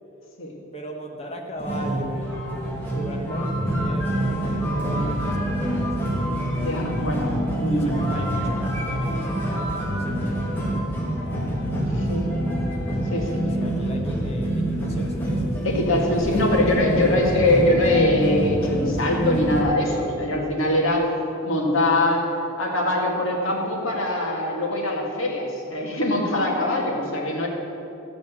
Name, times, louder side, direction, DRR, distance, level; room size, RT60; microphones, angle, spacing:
voice 1, 0.7-6.1 7.7-12.1 13.2-15.7, equal, 30° left, 1 dB, 1.4 m, -38 dB
sound 1, 1.6-19.6, right 1 dB, 10° left, 2.0 m, -26 dB
voice 2, 6.5-8.0 11.9-12.3 13.1-13.4 15.6-21.1 21.4-22.3 22.6-27.5, left 1 dB, 70° left, -2 dB, 2.2 m, -23 dB
14.0 x 5.1 x 8.3 m, 2.9 s
head